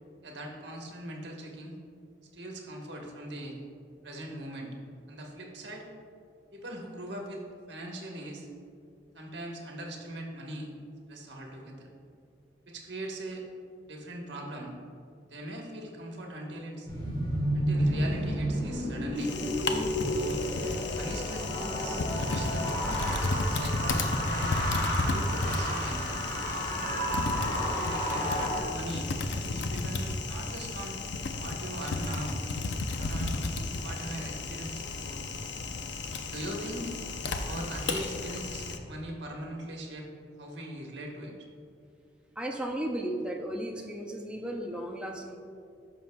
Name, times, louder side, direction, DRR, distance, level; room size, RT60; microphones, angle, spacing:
voice 1, 0.2-1.8 2.3-3.6 4.0-4.8 5.1-5.9 6.5-8.5 9.1-10.7 11.1-11.9 12.7-13.4 13.8-14.7 15.3-16.9 17.5-19.3 20.1-20.4 20.9-22.8 23.2-24.6 25.0-26.2 27.9-31.1 31.4-32.4 33.0-33.4 33.8-35.2 36.2-36.9 37.5-40.1 40.4-41.4, right 1 dB, 70° right, 0 dB, 1.2 m, -40 dB
sound 1, 16.8-28.6, equal, 25° left, 1.3 m, -31 dB
sound 2, 17.7-34.9, equal, 45° right, 1.4 m, -45 dB
Typing, 19.2-38.8, left 3 dB, 75° left, 0.6 m, -33 dB
voice 2, 42.4-45.4, right 1 dB, 5° right, 0 dB, 0.5 m, -35 dB
13.0 x 5.8 x 2.2 m, 2.4 s
head